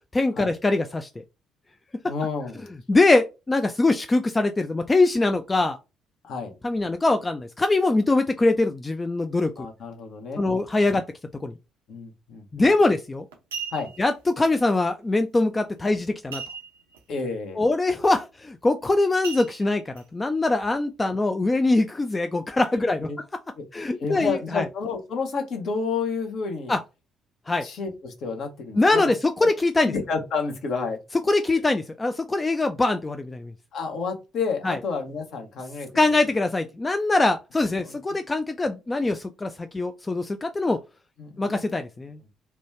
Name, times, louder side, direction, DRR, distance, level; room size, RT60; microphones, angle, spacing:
voice 1, 0.1-1.1 2.9-5.8 6.6-9.5 10.4-11.0 11.4-11.5 12.5-13.2 14.0-16.4 17.6-23.1 23.7-24.7 26.7-26.8 27.5-27.7 28.8-29.9 31.3-33.2 33.4-33.5 34.6-34.8 36.0-40.8 41.4-42.2, left 2 dB, 20° left, 0.3 m, -22 dB
voice 2, 2.0-2.7 6.2-6.5 9.6-10.5 10.9-11.0 11.9-12.4 13.7-13.9 17.1-17.6 22.8-23.2 23.6-23.7 24.0-26.7 27.6-29.1 29.8-31.0 32.8-32.9 33.7-35.9 37.8-38.0 41.2-41.8, left 4 dB, 55° left, 0.8 m, -30 dB
sound 1, 12.6-12.9 13.3-14.1 16.3-17.0 17.3-17.4 17.9-18.1 19.2-20.0 20.6-20.7, right 6 dB, 75° right, 0.5 m, -37 dB
3.0 x 2.2 x 3.1 m
figure-of-eight pair, 45°, 0 cm